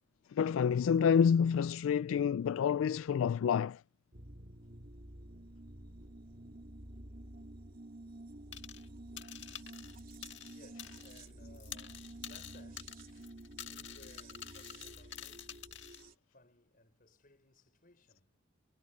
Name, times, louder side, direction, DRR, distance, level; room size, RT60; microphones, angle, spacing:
voice 1, 0.3-3.8, left 7 dB, 80° left, 0.3 m, -28 dB
sound 1, 4.1-16.1, right 1 dB, 45° right, 3.2 m, -51 dB
sound 2, 8.5-8.9 9.2-11.3 11.5-16.0, left 11 dB, 65° left, 1.7 m, -48 dB
voice 2, 9.0-15.7 16.3-18.4, left 2 dB, 45° left, 6.2 m, -63 dB
head